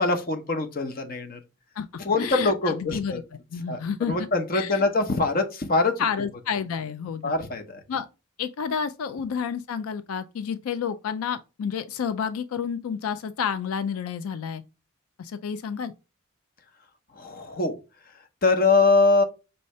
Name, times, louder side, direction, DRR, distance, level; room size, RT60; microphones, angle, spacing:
voice 1, 0.0-1.4 2.0-3.2 3.7-3.8 4.1-6.0 7.2-7.6 17.2-17.7 18.4-19.2, left 3 dB, 45° left, 0.7 m, -23 dB
voice 2, 2.2-3.2 3.5-4.3 4.5-4.8 6.0-7.3 7.9-8.1 8.4-14.6 15.2-15.9, left 7 dB, 85° left, 0.4 m, -30 dB
5.5 x 2.7 x 3.1 m
head